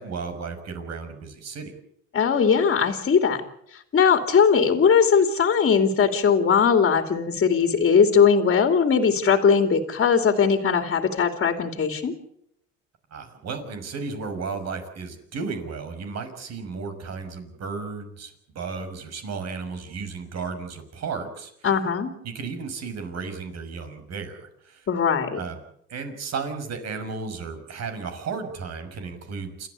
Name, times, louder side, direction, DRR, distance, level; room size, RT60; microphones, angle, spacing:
voice 1, 0.0-1.7 13.1-21.7 22.2-24.9 25.4-25.6 25.9-29.7, right 4 dB, 50° right, 8 dB, 5.9 m, -34 dB
voice 2, 2.1-3.4 3.9-12.1 21.6-22.1 24.9-25.4, left 6 dB, 35° left, 6 dB, 2.8 m, -20 dB
28.5 x 14.0 x 8.4 m, 0.74 s
cardioid pair, 115°, 33 cm